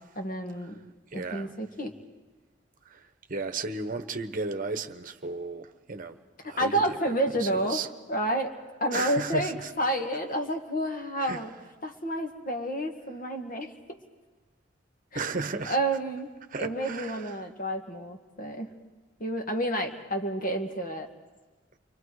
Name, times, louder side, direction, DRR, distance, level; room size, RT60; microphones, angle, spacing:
voice 1, 0.2-0.8 1.1-2.0 6.4-7.8 8.1-8.5 8.8-11.5 11.8-13.7 15.1-15.2 15.7-16.3 16.6-18.7 19.2-21.1, right 1 dB, 45° left, 1.9 m, -30 dB
voice 2, 1.1-1.5 2.9-3.0 3.3-6.2 6.4-7.1 7.4-7.9 8.9-9.7 11.2-11.4 15.1-15.8 16.5-17.3, right 4 dB, 45° right, 1.0 m, -34 dB
29.5 x 23.5 x 4.8 m
head